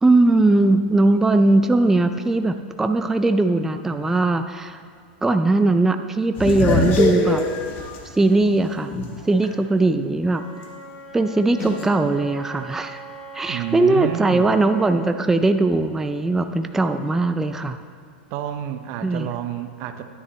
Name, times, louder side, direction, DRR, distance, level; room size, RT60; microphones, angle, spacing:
voice 1, 0.0-4.8 5.2-7.4 8.1-9.0 9.3-10.4 11.1-13.0 13.3-17.8 19.0-19.3, right 2 dB, 5° right, 8 dB, 0.3 m, -19 dB
sound 1, 6.4-9.5 9.9-10.0 11.6-11.9, left 3 dB, 40° left, 1.1 m, -23 dB
Wind instrument woodwind instrument, 10.2-15.0, right 2 dB, 10° left, 2.5 m, -40 dB
voice 2, 13.5-14.5 18.3-20.0, right 11 dB, 50° right, 9 dB, 0.6 m, -29 dB
9.9 x 9.7 x 3.1 m, 2.1 s
hypercardioid pair, 125°, 5 cm